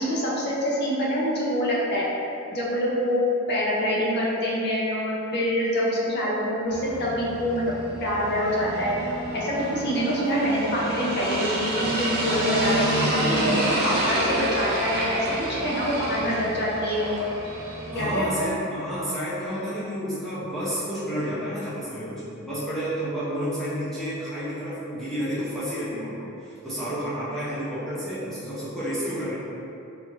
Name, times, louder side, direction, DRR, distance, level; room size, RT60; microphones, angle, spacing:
voice 1, 0.0-2.1 2.5-7.7 8.0-8.9 9.3-12.8 13.2-17.2 17.9-18.5, equal, 50° left, -6 dB, 0.7 m, -25 dB
sound 1, 6.7-18.3, right 1 dB, 45° right, 0.5 m, -28 dB
voice 2, 17.9-29.3, equal, ahead, -12 dB, 0.6 m, -30 dB
3.2 x 2.5 x 3.0 m, 2.8 s
head